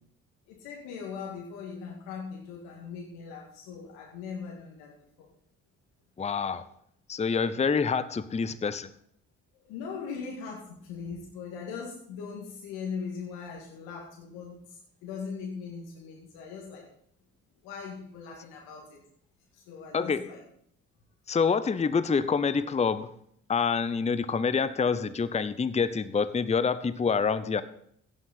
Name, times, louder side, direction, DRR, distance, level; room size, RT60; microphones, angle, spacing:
voice 1, 0.5-4.9 5.2-5.3 9.6-16.9 17.6-19.0 19.5-20.4, left 5 dB, 75° left, -1 dB, 1.9 m, -40 dB
voice 2, 6.2-6.6 7.1-8.9 19.9-20.2 21.3-23.1 23.5-27.6, left 5 dB, 15° left, 15 dB, 0.7 m, -27 dB
15.5 x 6.4 x 4.1 m, 0.67 s
hypercardioid pair, 45°, 38 cm